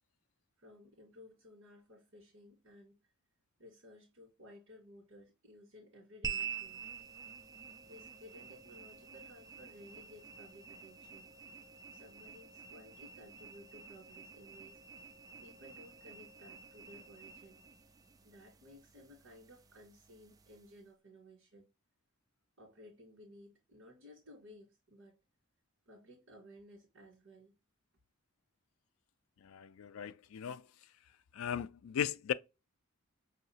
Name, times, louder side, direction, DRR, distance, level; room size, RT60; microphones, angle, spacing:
voice 1, 0.6-3.1 3.6-6.9 7.8-11.3 11.9-14.8 15.4-17.6 18.2-21.7 22.6-25.2 25.8-27.5, left 1 dB, 65° right, 1.5 m, -57 dB
sound 1, 6.2-20.8, right 7 dB, 15° right, 0.3 m, -48 dB
voice 2, 29.4-30.7 31.3-32.3, left 8 dB, 80° left, 0.3 m, -37 dB
5.5 x 2.8 x 2.8 m
head